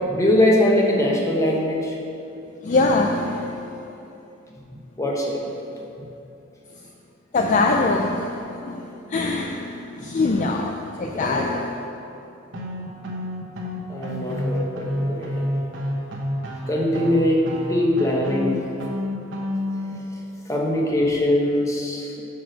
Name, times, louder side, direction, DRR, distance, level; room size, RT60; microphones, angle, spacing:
voice 1, 0.1-1.9 5.0-5.4 11.1-11.6 13.9-15.4 16.7-18.6 20.5-22.2, left 1 dB, 15° left, -2 dB, 1.0 m, -22 dB
voice 2, 2.6-3.7 7.3-8.8 9.1-11.8, left 3 dB, 40° left, 2 dB, 0.4 m, -23 dB
sound 1, 12.5-19.9, equal, 65° right, 1.0 m, -29 dB
6.0 x 4.7 x 6.4 m, 2.8 s
head